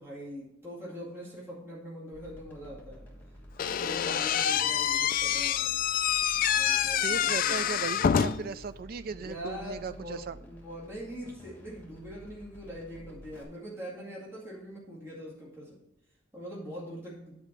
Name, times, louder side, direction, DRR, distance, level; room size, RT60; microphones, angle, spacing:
voice 1, 0.0-3.0 3.8-5.8 6.3-7.8 9.1-15.8 16.3-17.4, equal, 15° right, -6 dB, 2.1 m, -43 dB
sound 1, 2.1-13.4, equal, 10° left, 1.3 m, -51 dB
Slam / Squeak, 3.6-8.6, left 9 dB, 45° left, 0.3 m, -27 dB
voice 2, 6.9-10.4, right 5 dB, 50° right, 14 dB, 0.3 m, -37 dB
9.1 x 4.7 x 5.1 m, 0.81 s
head